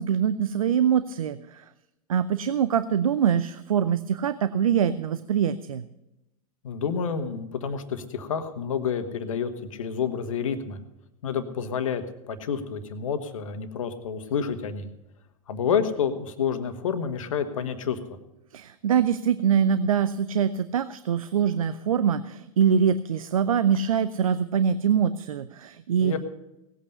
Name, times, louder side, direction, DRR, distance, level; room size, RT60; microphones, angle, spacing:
voice 1, 0.0-1.7 2.1-5.8 18.5-26.1, right 8 dB, 70° right, 14 dB, 0.6 m, -24 dB
voice 2, 6.6-10.8 11.2-14.9 15.5-18.2 26.0-26.2, left 7 dB, 65° left, 9 dB, 1.5 m, -29 dB
18.0 x 8.6 x 5.5 m, 0.92 s
figure-of-eight pair, 100°, 18 cm